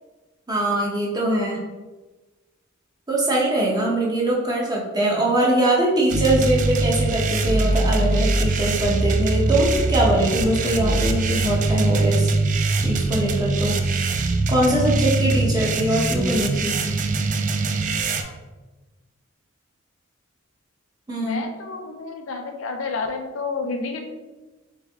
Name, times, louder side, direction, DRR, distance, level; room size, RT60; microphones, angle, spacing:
voice 1, 0.5-1.6 3.1-12.3 12.8-13.8 14.5-16.7 21.1-21.5, right 1 dB, 20° right, -3 dB, 0.8 m, -22 dB
sound 1, 6.1-18.2, right 2 dB, 40° right, 0.3 m, -22 dB
voice 2, 17.8-18.3 21.2-24.1, left 4 dB, 65° left, 5 dB, 0.5 m, -30 dB
3.4 x 3.2 x 3.5 m, 1.2 s
head